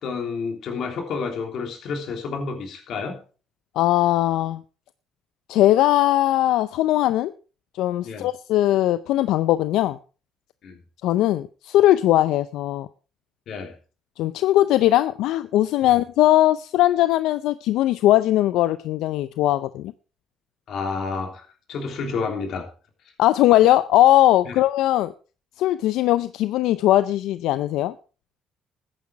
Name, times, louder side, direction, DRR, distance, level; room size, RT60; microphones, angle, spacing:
voice 1, 0.0-3.2 8.0-8.3 10.6-10.8 13.5-13.7 15.8-15.9 20.7-22.7 24.4-24.5, left 4 dB, 65° left, 3.4 m, -30 dB
voice 2, 3.8-4.6 5.5-7.3 7.7-10.0 11.0-12.9 14.2-19.9 23.2-25.1 25.6-27.9, left 14 dB, 85° left, 0.5 m, -19 dB
13.5 x 9.9 x 4.6 m
cardioid pair, 115°, 0 cm